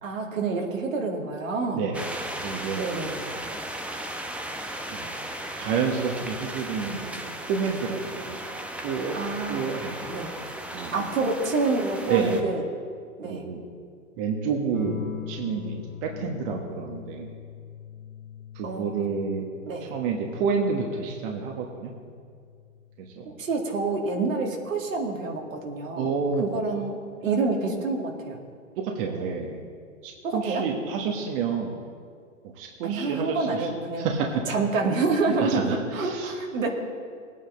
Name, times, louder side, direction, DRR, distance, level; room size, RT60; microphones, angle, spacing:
voice 1, 0.0-1.8 2.8-3.2 9.1-9.6 10.1-10.3 10.9-12.6 13.2-13.5 18.6-19.1 19.7-19.9 23.2-26.1 26.5-27.0 27.2-28.4 30.2-30.6 32.8-34.1 34.5-36.7, right 3 dB, 75° right, 0 dB, 2.5 m, -27 dB
voice 2, 1.7-2.1 2.4-2.9 4.9-5.2 5.6-8.4 8.8-9.2 9.5-10.0 10.7-11.1 12.1-12.5 13.2-13.6 14.2-15.0 15.3-17.3 18.5-19.4 19.8-21.9 23.0-23.2 26.0-26.5 28.8-29.6 30.0-31.8 32.6-33.7 34.0-34.3 35.3-36.3, right 5 dB, 45° right, 1 dB, 1.6 m, -29 dB
sound 1, 1.9-12.4, right 1 dB, 5° right, 0.9 m, -36 dB
sound 2, 14.7-23.8 25.3-25.8, left 9 dB, 85° left, 1.4 m, -42 dB
19.5 x 9.1 x 3.9 m, 2.2 s
figure-of-eight pair, 105°, 40 cm